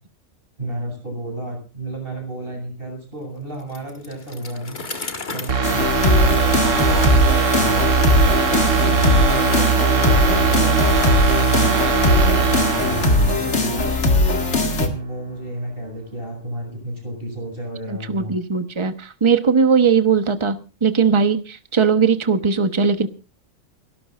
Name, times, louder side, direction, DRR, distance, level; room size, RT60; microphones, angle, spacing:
voice 1, 0.6-4.8 5.3-8.6 9.0-14.0 14.8-18.3, right 1 dB, 45° right, 1 dB, 7.9 m, -32 dB
Bicycle, 3.6-7.4, left 3 dB, 40° left, 1.9 m, -36 dB
sound 1, 5.5-14.2 14.5-14.6, right 5 dB, 85° right, 1.9 m, -20 dB
sound 2, 5.6-14.9, left 2 dB, 65° left, 2.4 m, -19 dB
voice 2, 17.9-23.1, right 6 dB, 25° right, 10 dB, 1.1 m, -19 dB
30.0 x 12.5 x 2.5 m, 0.34 s
omnidirectional pair, 1.3 m